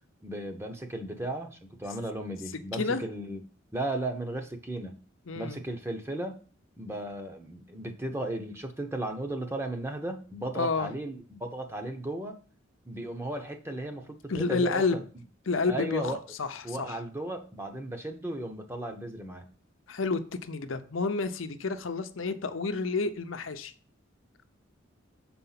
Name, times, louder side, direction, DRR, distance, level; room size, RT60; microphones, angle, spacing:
voice 1, 0.2-3.4 3.7-5.0 5.3-6.4 6.8-12.4 12.8-15.0 15.7-16.2 16.6-19.4, right 1 dB, 15° right, 4 dB, 0.9 m, -35 dB
voice 2, 5.3-5.6 10.5-10.9 14.3-15.0 15.5-17.0 19.9-23.7, left 4 dB, 85° left, 9 dB, 0.7 m, -30 dB
6.9 x 4.3 x 5.7 m, 0.40 s
head